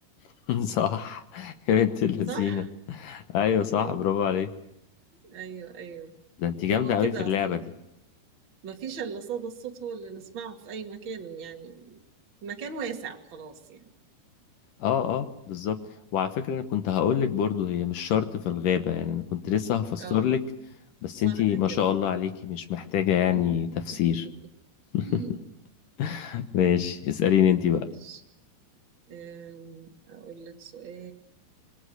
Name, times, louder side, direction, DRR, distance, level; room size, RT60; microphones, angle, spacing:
voice 1, 0.5-2.6 2.9-4.5 6.4-7.6 14.8-15.8 16.1-20.4 21.0-24.3 24.9-25.2 26.0-27.9, left 9 dB, 70° left, 9 dB, 2.2 m, -26 dB
voice 2, 2.3-2.7 3.8-3.9 5.2-6.1 6.7-7.6 8.6-12.0 12.4-13.8 20.0-20.3 21.2-21.8 23.3-23.4 24.0-24.1 25.0-25.4 28.0-28.2 29.1-31.1, right 6 dB, 35° right, 3 dB, 2.2 m, -39 dB
26.5 x 22.0 x 7.9 m, 0.82 s
omnidirectional pair, 5.0 m